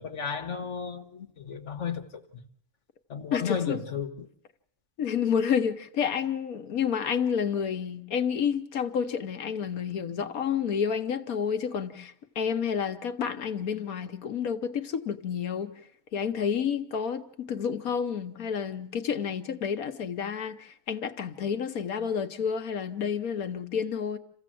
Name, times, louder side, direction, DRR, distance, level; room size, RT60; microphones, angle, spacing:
voice 1, 0.0-2.0 3.1-4.3, left 7 dB, 55° left, 1.6 m, -33 dB
voice 2, 3.3-3.8 5.0-15.7 16.1-24.2, left 7 dB, 80° left, 1.5 m, -30 dB
27.5 x 15.5 x 7.7 m
omnidirectional pair, 1.5 m